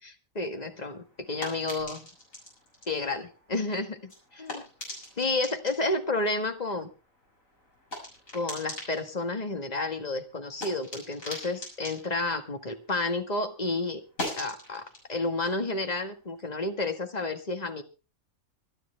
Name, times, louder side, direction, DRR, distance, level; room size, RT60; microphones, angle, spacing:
voice 1, 0.0-2.1 2.9-4.6 5.2-6.9 8.3-14.0 14.4-17.8, left 2 dB, 30° left, 6 dB, 1.8 m, -31 dB
sound 1, 0.6-13.3 13.6-16.9, left 1 dB, 75° left, 7.1 m, -43 dB
26.0 x 9.2 x 3.4 m, 0.32 s
omnidirectional pair, 1.4 m